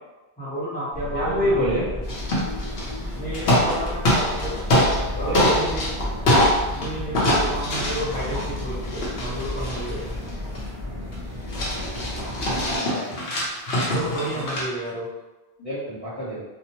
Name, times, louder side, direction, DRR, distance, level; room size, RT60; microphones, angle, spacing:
voice 1, 0.4-2.0 3.1-4.7 5.1-5.9 6.7-10.1 13.9-15.1, right 1 dB, 10° left, -9 dB, 0.8 m, -32 dB
sound 1, 0.9-12.8, left 1 dB, 35° right, 0.6 m, -32 dB
voice 2, 1.1-1.8 5.1-5.7 12.6-13.1 15.6-16.4, equal, 40° left, -11 dB, 0.7 m, -26 dB
sound 2, 2.1-3.0 3.3-5.0 5.3-6.9 7.1-10.7 11.1-11.2 11.5-14.6, left 1 dB, 65° left, 0.9 m, -23 dB
2.7 x 2.0 x 2.8 m, 1.1 s
omnidirectional pair, 1.1 m